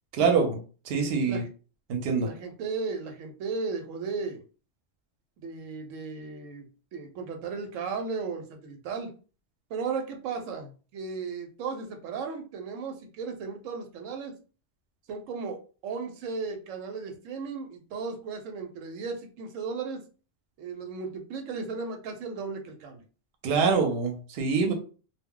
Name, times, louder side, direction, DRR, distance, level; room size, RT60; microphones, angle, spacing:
voice 1, 0.1-0.6 0.9-1.4 1.9-2.3 23.4-24.7, right 5 dB, 60° right, 3 dB, 0.8 m, -25 dB
voice 2, 1.0-1.5 2.2-4.4 5.4-9.1 9.7-14.3 15.1-20.0 20.6-23.0, right 4 dB, 85° right, 4 dB, 1.0 m, -35 dB
2.2 x 2.1 x 3.6 m, 0.37 s
omnidirectional pair, 1.3 m